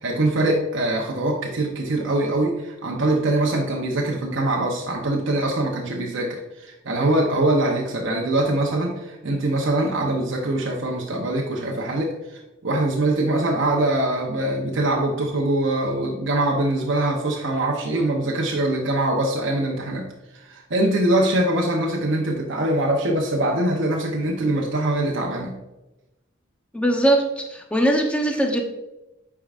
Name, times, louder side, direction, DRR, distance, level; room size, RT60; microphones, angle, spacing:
voice 1, 0.0-25.6, right 1 dB, 65° right, -1 dB, 0.8 m, -23 dB
voice 2, 26.7-28.6, right 1 dB, 5° left, 2 dB, 0.8 m, -21 dB
8.7 x 4.7 x 2.5 m, 0.99 s
head